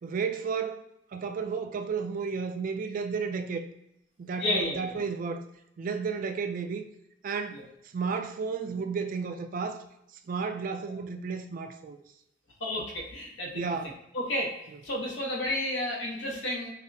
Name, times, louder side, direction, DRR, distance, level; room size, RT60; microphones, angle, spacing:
voice 1, 0.0-0.8 1.1-3.6 4.2-5.4 5.8-6.9 7.2-7.7 7.9-9.8 10.3-12.0 13.5-14.0, right 5 dB, 50° right, 0.3 m, -32 dB
voice 2, 4.4-5.0 7.5-7.6 10.8-10.9 12.6-13.6 14.1-14.5 14.8-16.7, left 1 dB, 80° left, 0.9 m, -31 dB
5.6 x 2.0 x 2.6 m
head